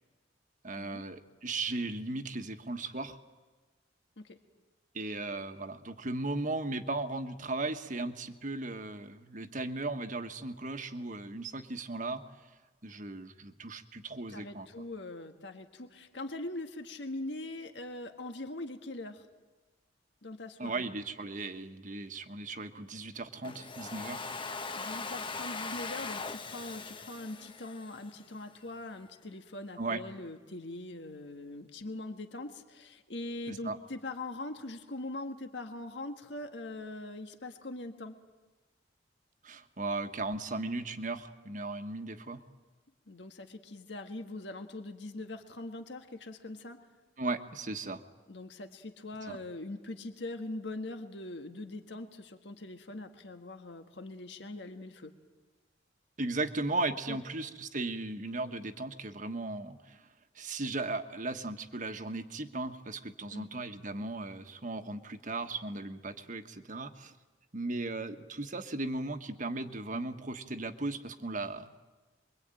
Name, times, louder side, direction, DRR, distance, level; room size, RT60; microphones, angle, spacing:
voice 1, 0.6-3.2 4.9-12.5 12.8-14.7 20.6-24.2 29.8-30.0 33.5-33.8 39.4-42.4 47.2-48.0 49.3-49.4 56.2-60.1 60.3-67.1 67.5-71.7, right 2 dB, 45° right, 8 dB, 1.4 m, -37 dB
voice 2, 14.3-19.2 20.2-20.9 24.7-38.1 43.1-46.8 48.3-55.1 57.1-57.2 63.3-63.5, left 2 dB, 70° left, 6 dB, 1.6 m, -42 dB
Domestic sounds home sounds, 23.4-28.4, left 4 dB, 30° left, 1.0 m, -40 dB
27.0 x 23.0 x 9.0 m, 1.2 s
head